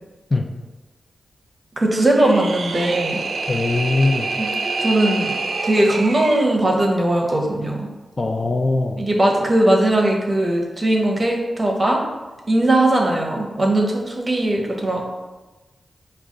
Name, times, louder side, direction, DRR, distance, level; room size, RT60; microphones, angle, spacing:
voice 1, 1.8-3.2 4.4-4.5 4.8-5.3 5.6-7.9 9.0-12.0 12.5-15.0, right 1 dB, 30° right, 0 dB, 0.7 m, -19 dB
sound 1, 2.0-6.5, right 3 dB, 70° right, 0.4 m, -26 dB
voice 2, 3.5-4.3 8.2-8.9, left 2 dB, 35° left, 5 dB, 0.3 m, -20 dB
4.8 x 2.3 x 3.7 m, 1.2 s
wide cardioid pair, 85°, 0 cm